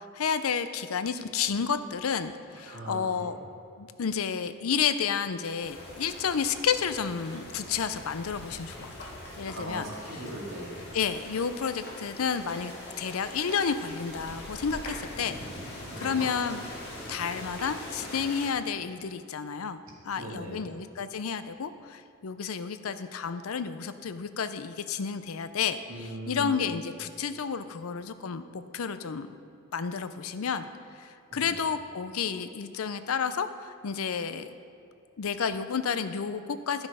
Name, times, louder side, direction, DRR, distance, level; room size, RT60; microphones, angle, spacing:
voice 1, 0.1-3.4 3.8-9.1 9.4-9.9 10.9-12.7 13.0-15.4 15.7-16.6 17.1-19.8 20.0-29.3 29.7-30.7 31.0-34.6 35.2-36.9, left 6 dB, 90° left, 11 dB, 0.5 m, -31 dB
voice 2, 2.6-3.3 9.5-10.9 15.9-16.2 20.2-20.7 25.9-26.6 31.3-31.5, right 1 dB, 65° right, -3 dB, 2.1 m, -39 dB
sound 1, 5.6-18.5, left 1 dB, 50° left, 2.1 m, -42 dB
12.0 x 6.2 x 4.9 m, 2.6 s
head